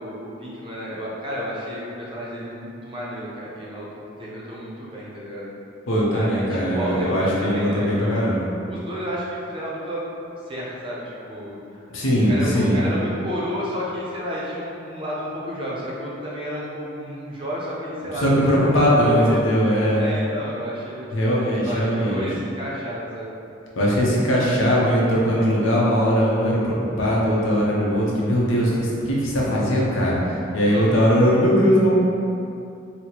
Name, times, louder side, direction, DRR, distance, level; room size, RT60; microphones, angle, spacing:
voice 1, 0.0-3.9 4.2-5.5 6.1-8.4 8.7-10.0 10.5-11.8 12.3-19.4 20.0-23.3 24.0-24.1 30.7-30.8, equal, 25° right, -6 dB, 0.5 m, -31 dB
voice 2, 5.9-8.5 11.9-12.8 18.1-20.1 21.1-22.2 23.7-31.9, equal, 80° left, -5 dB, 0.7 m, -20 dB
4.2 x 2.1 x 2.8 m, 2.7 s
head